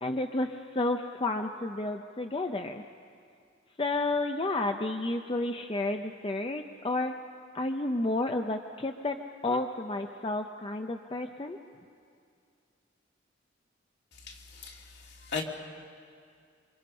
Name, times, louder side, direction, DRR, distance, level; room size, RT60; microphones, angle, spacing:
voice 1, 0.0-2.8 3.8-7.1 7.5-9.2 9.4-11.6, left 2 dB, 30° left, 5 dB, 0.7 m, -31 dB
voice 2, 14.3-14.9 15.2-15.4, left 5 dB, 65° left, 0 dB, 2.9 m, -36 dB
27.5 x 25.5 x 5.5 m, 2.3 s
head